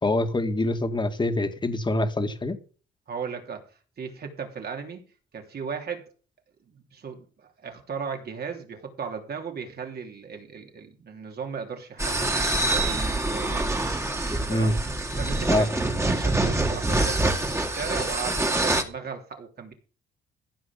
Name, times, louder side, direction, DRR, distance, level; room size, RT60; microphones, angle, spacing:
voice 1, 0.0-2.6 14.5-14.7 15.5-15.7, left 1 dB, 25° left, 7 dB, 2.1 m, -25 dB
voice 2, 3.1-3.6 4.0-5.0 5.3-6.0 6.7-13.8 14.5-14.8 15.2-19.7, right 6 dB, 50° right, 3 dB, 3.3 m, -36 dB
sound 1, 12.0-18.8, right 2 dB, 15° right, 2.4 m, -25 dB
15.0 x 5.7 x 7.5 m, 0.38 s
cardioid pair, 90°, 20 cm